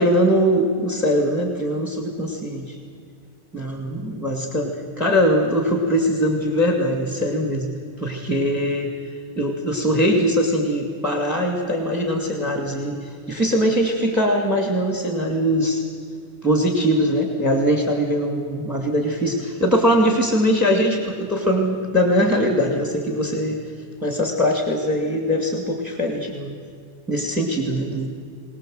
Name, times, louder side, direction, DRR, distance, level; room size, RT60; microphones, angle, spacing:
voice 1, 0.0-2.8 3.5-7.7 8.0-15.8 16.4-23.7 24.0-26.5 27.1-28.1, equal, ahead, 3 dB, 2.3 m, -21 dB
22.0 x 19.5 x 7.8 m, 2.2 s
omnidirectional pair, 1.2 m